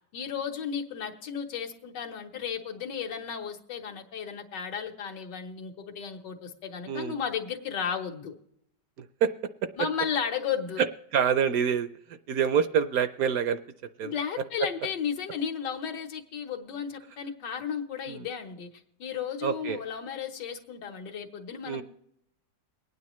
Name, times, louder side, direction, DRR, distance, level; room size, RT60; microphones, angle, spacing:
voice 1, 0.1-8.3 9.8-10.8 14.0-18.7 19.0-21.8, left 7 dB, 90° left, 4 dB, 1.8 m, -34 dB
voice 2, 11.1-11.9 12.3-13.6 14.0-14.1 18.1-18.3 19.4-19.8 21.7-21.8, right 7 dB, 70° right, 12 dB, 0.9 m, -26 dB
23.0 x 9.4 x 3.1 m, 0.76 s
omnidirectional pair, 1.8 m